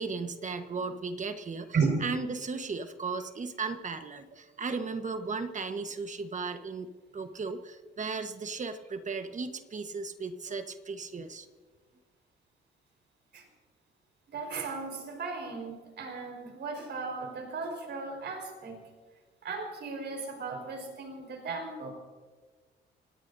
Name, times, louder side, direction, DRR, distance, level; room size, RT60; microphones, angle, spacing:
voice 1, 0.0-1.7 2.0-11.5, right 4 dB, 40° right, 8 dB, 1.3 m, -36 dB
voice 2, 1.7-2.0 13.3-13.5 14.3-18.8 19.4-21.9, right 4 dB, 60° right, 3 dB, 4.8 m, -35 dB
29.5 x 17.5 x 2.7 m, 1.5 s
cardioid pair, 90°, 20 cm